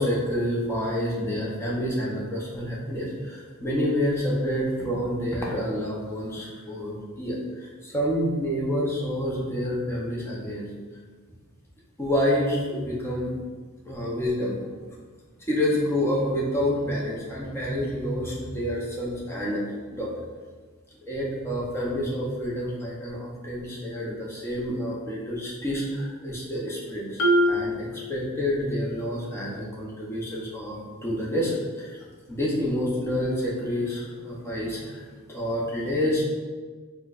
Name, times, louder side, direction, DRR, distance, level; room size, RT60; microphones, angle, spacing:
voice 1, 0.0-10.7 12.0-13.3 13.9-14.7 15.5-19.6 19.9-20.2 21.1-27.2 27.5-32.0 32.3-36.2, equal, 10° left, -5 dB, 0.6 m, -28 dB
Marimba xylophone, 27.2-29.0, equal, 65° left, 0.5 m, -25 dB
4.3 x 2.1 x 2.4 m, 1.5 s
head